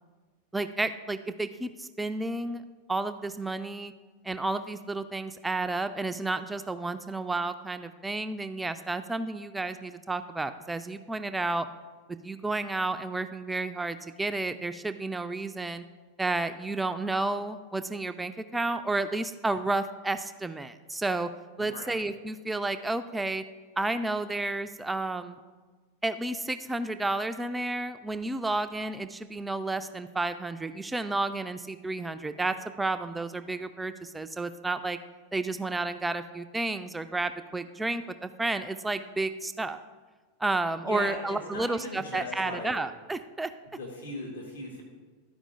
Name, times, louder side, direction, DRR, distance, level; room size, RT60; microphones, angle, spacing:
voice 1, 0.5-2.6 2.9-3.9 4.2-11.7 12.2-15.8 16.2-21.3 21.6-23.4 23.8-25.4 26.0-35.0 35.3-39.8 40.4-43.5, right 2 dB, 10° right, 9 dB, 0.3 m, -31 dB
voice 2, 21.6-21.9 40.8-42.7 43.8-44.8, left 2 dB, 70° left, -1 dB, 1.4 m, -38 dB
12.0 x 4.8 x 3.8 m, 1.4 s
figure-of-eight pair, 90°, 0 cm